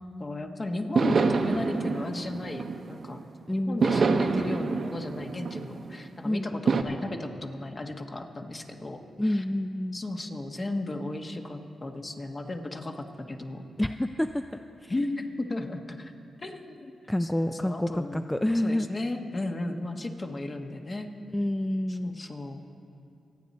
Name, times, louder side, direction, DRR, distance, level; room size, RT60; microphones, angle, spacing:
voice 1, 0.0-3.2 3.5-9.4 9.9-13.7 14.9-16.1 16.4-16.9 17.2-18.2 18.6-21.1 21.9-22.6, left 2 dB, 40° left, 3 dB, 1.4 m, -35 dB
sound 1, 1.0-3.2 3.8-6.1 6.7-6.8, right 4 dB, 60° right, 0.8 m, -26 dB
voice 2, 3.5-4.0 6.2-6.7 9.2-10.0 13.8-14.4 14.8-14.9 17.1-18.9 21.3-22.2, left 1 dB, 10° left, 8 dB, 0.4 m, -28 dB
25.5 x 9.2 x 4.3 m, 2.6 s
cardioid pair, 60°, 0 cm